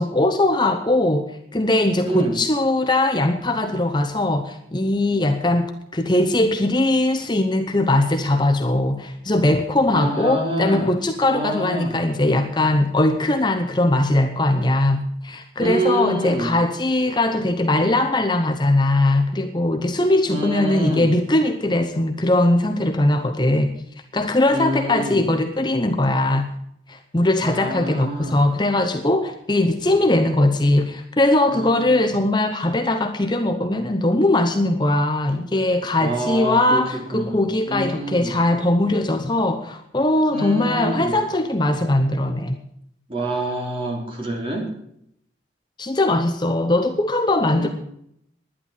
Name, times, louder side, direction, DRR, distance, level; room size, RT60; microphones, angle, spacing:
voice 1, 0.0-23.7 24.1-26.5 26.9-42.6 45.8-47.7, left 1 dB, 25° left, 5 dB, 0.9 m, -20 dB
voice 2, 9.9-10.9 11.2-12.0 15.6-16.5 20.3-21.1 24.5-25.2 27.4-28.4 31.5-32.1 36.0-38.3 40.3-41.1 43.1-44.7 47.5-47.7, right 1 dB, 30° right, 1 dB, 3.2 m, -26 dB
11.5 x 10.0 x 7.4 m, 0.72 s
head